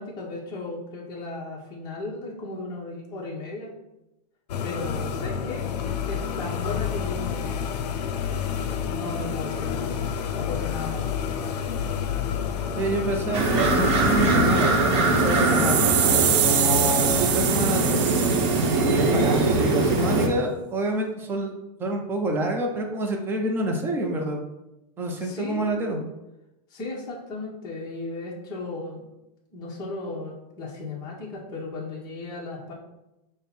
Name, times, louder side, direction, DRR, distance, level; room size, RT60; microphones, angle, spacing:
voice 1, 0.0-3.7 4.6-5.7 6.1-7.7 8.8-10.0 10.3-11.1 25.2-25.8 26.7-29.1 29.5-32.7, left 3 dB, 20° left, -4 dB, 0.7 m, -35 dB
sound 1, 4.5-14.4, left 7 dB, 85° left, 0.5 m, -29 dB
voice 2, 12.8-15.8 16.1-18.0 18.7-21.5 21.8-24.4 25.0-26.0, right 1 dB, 10° right, 2 dB, 0.4 m, -27 dB
sound 2, 13.3-20.3, right 2 dB, 45° right, 0.8 m, -22 dB
sound 3, 15.1-19.3, right 8 dB, 85° right, 0.6 m, -25 dB
5.3 x 2.0 x 4.2 m, 0.94 s
supercardioid pair, 155°, 20 cm